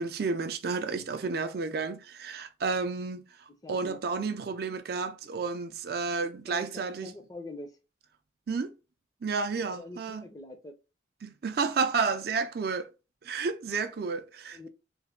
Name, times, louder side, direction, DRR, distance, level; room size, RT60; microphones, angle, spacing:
voice 1, 0.0-3.2 3.7-7.1 8.5-8.7 9.2-10.3 11.2-12.9 13.2-14.7, right 4 dB, 55° right, 0.4 m, -31 dB
voice 2, 3.6-4.0 6.5-7.7 9.7-10.7 14.5-14.7, left 2 dB, 20° left, 0.5 m, -44 dB
3.3 x 2.1 x 3.5 m
head